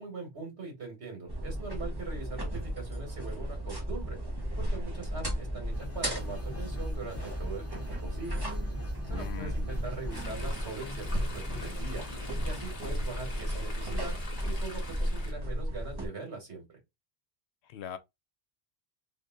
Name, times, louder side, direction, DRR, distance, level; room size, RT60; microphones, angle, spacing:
voice 1, 0.0-4.2 4.6-8.4 9.1-12.0 12.4-14.1 14.4-16.7, right 4 dB, 80° right, 2.0 m, -41 dB
sound 1, 1.3-16.1, equal, 25° right, 1.0 m, -34 dB
sound 2, 5.7-15.0, left 3 dB, 20° left, 0.5 m, -46 dB
voice 2, 9.1-9.6 17.6-18.0, left 9 dB, 85° left, 0.9 m, -40 dB
Chatter / Stream, 10.1-15.3, left 2 dB, 35° left, 1.2 m, -45 dB
3.5 x 2.6 x 3.6 m
omnidirectional pair, 1.1 m